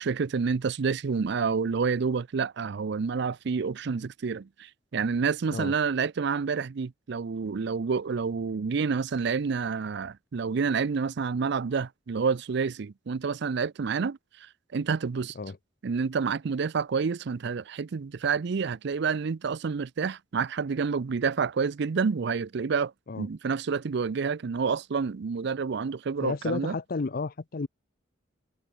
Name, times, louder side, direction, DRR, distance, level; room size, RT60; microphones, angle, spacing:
voice 1, 0.0-15.3 15.8-26.8, right 5 dB, 65° right, 0.5 m, -29 dB
voice 2, 26.2-27.7, left 3 dB, 50° left, 0.6 m, -32 dB
head